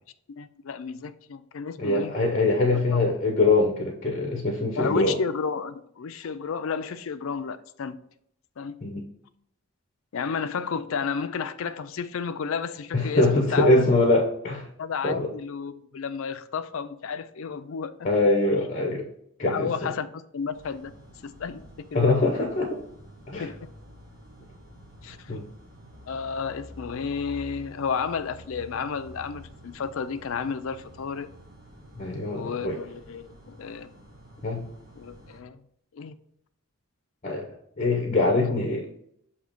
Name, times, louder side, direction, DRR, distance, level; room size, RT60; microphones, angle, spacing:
voice 1, 0.3-2.1 2.7-3.0 4.8-8.0 8.6-8.8 10.1-13.9 14.8-17.9 19.5-20.9 21.2-21.6 21.9-22.1 23.4-23.7 25.0-25.4 26.1-31.3 32.3-33.9 35.0-35.6 35.9-36.2 38.4-38.5, left 6 dB, 70° left, 11 dB, 0.4 m, -32 dB
voice 2, 1.8-5.2 8.8-9.0 12.9-14.7 15.0-15.3 18.0-19.1 19.4-19.7 21.9-22.8 23.3-23.5 25.3-25.4 32.0-32.8 34.4-34.6 37.2-37.5 37.8-38.9, left 2 dB, 35° left, 3 dB, 0.7 m, -23 dB
sound 1, 20.5-35.4, equal, 40° right, 1.3 m, -48 dB
6.7 x 2.9 x 5.0 m, 0.71 s
head